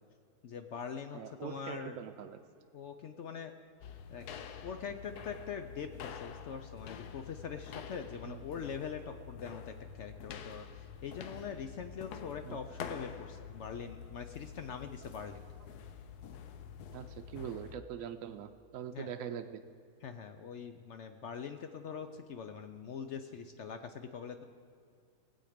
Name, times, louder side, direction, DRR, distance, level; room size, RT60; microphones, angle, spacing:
voice 1, 0.4-2.0 2.7-3.5 4.1-4.2 4.6-15.4 18.9-19.1 20.0-24.5, left 6 dB, 65° left, 8 dB, 0.7 m, -43 dB
voice 2, 1.1-2.4 8.3-8.4 12.4-12.6 16.9-19.6, right 9 dB, 65° right, 7 dB, 0.9 m, -43 dB
sound 1, 3.8-17.8, left 7 dB, 85° left, 1.2 m, -47 dB
19.5 x 7.8 x 5.1 m, 2.3 s
omnidirectional pair, 1.6 m